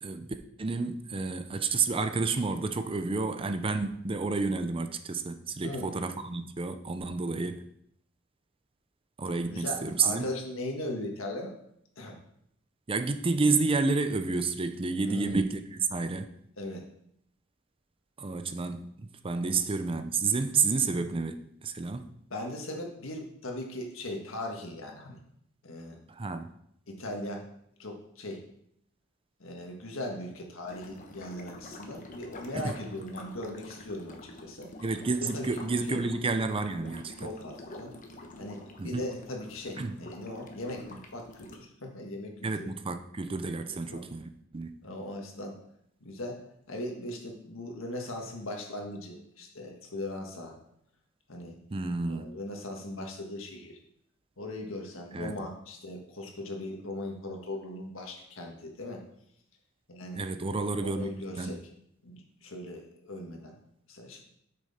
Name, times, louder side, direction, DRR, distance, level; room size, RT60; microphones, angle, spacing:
voice 1, 0.0-7.6 9.2-10.3 12.9-16.3 18.2-22.0 26.1-26.5 32.5-32.8 34.8-37.3 38.8-39.1 39.8-40.0 42.4-44.7 51.7-52.3 55.1-55.3 60.2-61.6, right 4 dB, 25° right, 9 dB, 0.5 m, -30 dB
voice 2, 5.6-5.9 7.2-7.5 9.5-11.5 12.0-12.2 15.0-15.4 16.6-16.9 19.4-19.6 22.3-25.2 25.6-26.0 26.9-27.5 27.8-28.4 29.4-34.7 35.2-35.6 35.9-36.0 37.2-37.9 38.4-42.7 43.9-44.0 44.8-45.6 46.0-46.4 46.7-50.6 51.3-51.6 52.1-53.8 54.4-59.0 59.9-60.2 60.8-61.6 62.0-63.6 63.9-64.2, left 1 dB, 70° left, 1 dB, 1.7 m, -39 dB
sound 1, 30.7-41.6, left 2 dB, 40° left, 1.1 m, -47 dB
8.6 x 6.5 x 4.2 m, 0.72 s
head